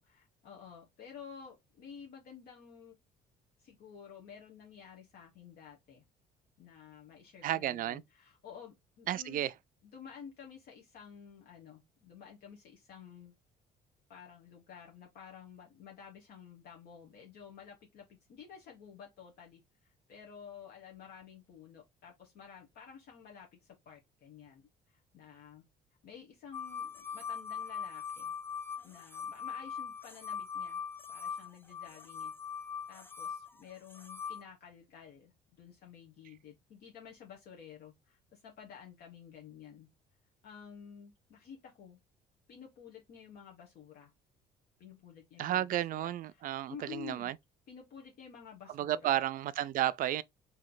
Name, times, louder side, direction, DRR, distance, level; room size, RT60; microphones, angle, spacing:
voice 1, 0.0-3.0 3.6-6.0 6.6-9.5 9.8-13.3 14.1-25.6 26.0-28.3 28.8-30.8 31.1-32.3 32.9-39.9 40.4-42.0 42.5-44.1 44.8-46.4 46.7-47.4 47.7-49.2, left 7 dB, 65° left, 1.1 m, -52 dB
voice 2, 7.4-8.0 9.1-9.5 45.4-47.4 48.7-50.2, right 12 dB, 55° right, 0.4 m, -32 dB
sound 1, 26.5-34.4, left 7 dB, 15° left, 0.5 m, -41 dB
3.2 x 2.8 x 3.9 m
cardioid pair, 110°, 17 cm